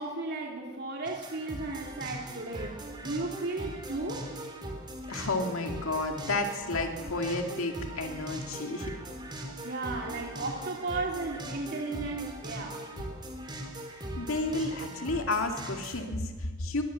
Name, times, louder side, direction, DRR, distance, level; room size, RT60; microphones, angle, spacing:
voice 1, 0.0-2.7 3.0-4.3 9.6-12.8, right 3 dB, 55° right, 0 dB, 2.7 m, -35 dB
sound 1, 1.1-16.0, right 1 dB, 20° right, 3.5 m, -40 dB
voice 2, 5.1-8.9 14.2-16.8, left 2 dB, 90° left, 4 dB, 2.1 m, -31 dB
22.5 x 18.0 x 7.4 m, 1.4 s
head